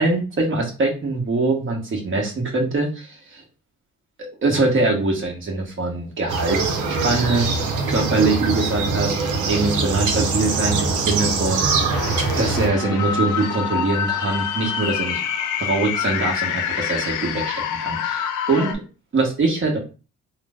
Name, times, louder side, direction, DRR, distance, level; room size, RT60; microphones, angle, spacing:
voice 1, 0.0-3.4 4.4-7.5 7.9-12.0 12.4-15.2 15.6-18.0 18.5-18.8 19.1-19.8, right 3 dB, 40° right, -1 dB, 1.3 m, -23 dB
sound 1, 6.3-12.7, right 4 dB, 80° right, 0.8 m, -23 dB
sound 2, 11.9-18.7, left 8 dB, 80° left, 0.6 m, -26 dB
3.1 x 2.1 x 3.5 m, 0.33 s
cardioid pair, 90°, 30 cm